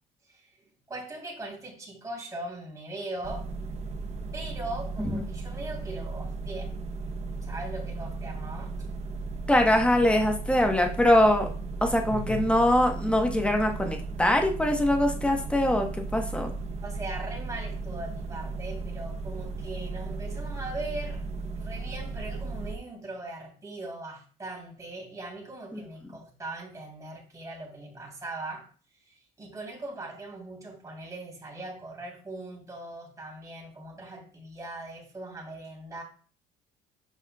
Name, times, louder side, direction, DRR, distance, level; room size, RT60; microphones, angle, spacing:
voice 1, 0.9-3.5 4.3-6.7 7.4-8.8 12.1-12.6 16.8-21.2 21.6-28.7 29.1-36.0, right 2 dB, 20° right, -2 dB, 3.2 m, -40 dB
sound 1, 3.2-22.8, right 3 dB, 40° right, 0.9 m, -36 dB
voice 2, 9.5-11.5 11.8-16.5 25.7-25.8, left 1 dB, 5° left, 3 dB, 1.1 m, -23 dB
7.4 x 5.6 x 2.3 m, 0.41 s
cardioid pair, 110°, 17 cm